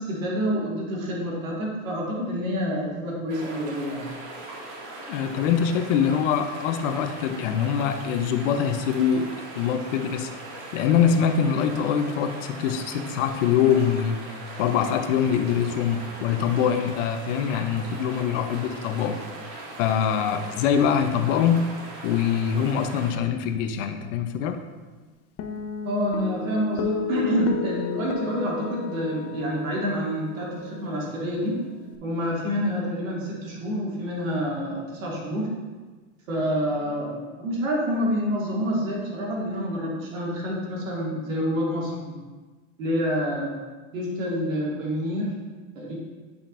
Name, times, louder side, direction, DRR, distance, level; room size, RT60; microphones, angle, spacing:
voice 1, 0.0-4.0 25.8-31.6 32.0-35.5 36.3-42.2 42.8-43.5 43.9-45.3 45.8-45.9, equal, 90° right, -3 dB, 2.3 m, -27 dB
sound 1, 3.3-23.1, right 2 dB, 65° right, 2.2 m, -40 dB
voice 2, 5.1-10.3 10.7-14.2 14.6-19.2 19.8-21.6 22.0-24.6, left 8 dB, 70° left, 8 dB, 0.8 m, -24 dB
Guitar, 25.4-32.0, left 7 dB, 35° left, 0.7 m, -34 dB
10.0 x 5.3 x 2.6 m, 1.3 s
supercardioid pair, 120°, 39 cm